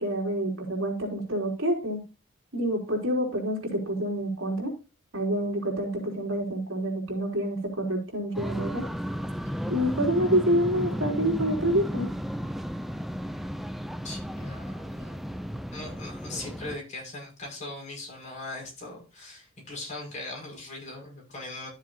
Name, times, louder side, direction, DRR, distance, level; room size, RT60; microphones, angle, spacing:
voice 1, 0.0-2.0 2.5-4.7 5.1-8.8 9.7-12.1, right 1 dB, 75° right, 0 dB, 4.2 m, -27 dB
sound 1, 8.3-16.8, equal, ahead, 0.5 m, -33 dB
voice 2, 14.0-15.3 15.7-21.7, left 2 dB, 35° left, -1 dB, 5.9 m, -40 dB
13.5 x 7.3 x 2.7 m, 0.31 s
head